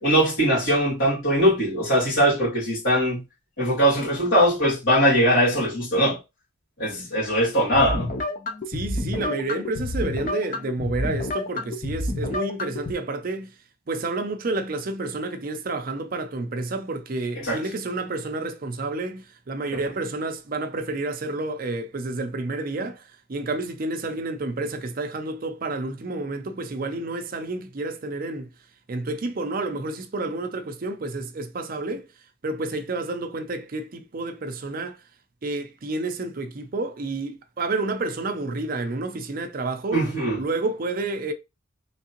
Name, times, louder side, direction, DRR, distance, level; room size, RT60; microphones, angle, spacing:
voice 1, 0.0-3.2 3.6-6.2 6.8-8.1 17.4-17.6 39.9-40.4, equal, 70° left, 2.5 m, -21 dB
sound 1, 7.7-12.9, left 1 dB, 40° left, 0.5 m, -29 dB
voice 2, 8.7-13.5 13.9-28.5 28.9-32.1 32.4-35.0 35.4-40.0 40.4-41.3, right 2 dB, 45° right, 0.5 m, -30 dB
3.6 x 3.2 x 2.9 m
head